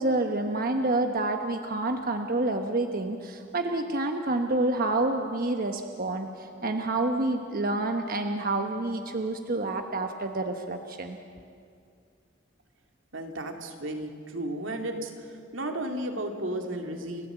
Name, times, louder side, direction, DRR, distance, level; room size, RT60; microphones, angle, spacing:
voice 1, 0.0-11.2, right 2 dB, 50° right, 5 dB, 1.1 m, -28 dB
voice 2, 13.1-15.1 15.5-17.3, right 1 dB, 90° right, 3 dB, 2.5 m, -33 dB
30.0 x 14.5 x 8.1 m, 2.3 s
head